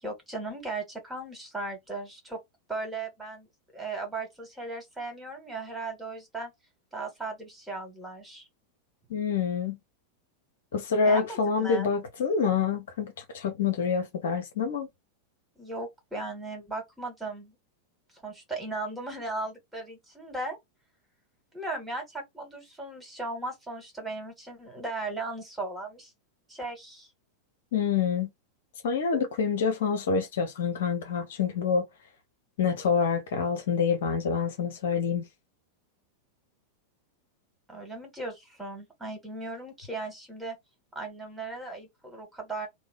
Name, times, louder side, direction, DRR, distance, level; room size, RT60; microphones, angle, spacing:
voice 1, 0.0-2.4 2.7-3.5 3.7-6.5 6.9-8.4 11.0-11.9 15.6-17.6 18.1-20.6 21.5-26.1 26.5-27.1 37.7-40.6 41.0-42.7, right 2 dB, 10° right, 1.8 m, -37 dB
voice 2, 9.1-9.8 10.7-14.9 27.7-28.3 28.8-31.9 32.6-35.3, left 6 dB, 60° left, 0.8 m, -27 dB
3.1 x 2.2 x 3.6 m
figure-of-eight pair, 90°, 0 cm